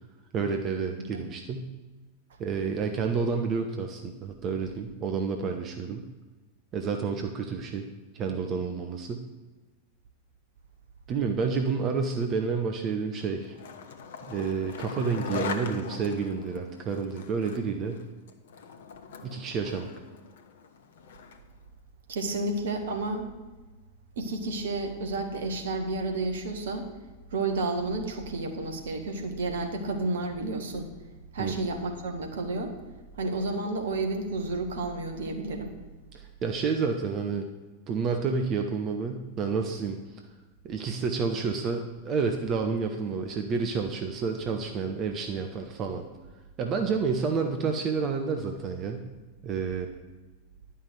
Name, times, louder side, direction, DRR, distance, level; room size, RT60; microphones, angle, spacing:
voice 1, 0.3-1.7 2.4-6.0 6.7-7.9 8.1-9.2 11.1-13.5 14.3-18.0 19.2-19.9 31.4-31.6 36.1-37.5 37.9-40.0 40.6-46.0 46.6-49.0 49.4-49.9, right 5 dB, 30° right, 4 dB, 1.0 m, -29 dB
Skateboard, 13.2-21.5, left 6 dB, 60° left, 1.0 m, -41 dB
voice 2, 22.1-23.3 24.2-26.9 27.3-30.9 31.3-32.7 33.2-35.7, right 2 dB, 60° right, 5 dB, 1.6 m, -31 dB
11.0 x 5.7 x 8.0 m, 1.2 s
figure-of-eight pair, 90°, 0 cm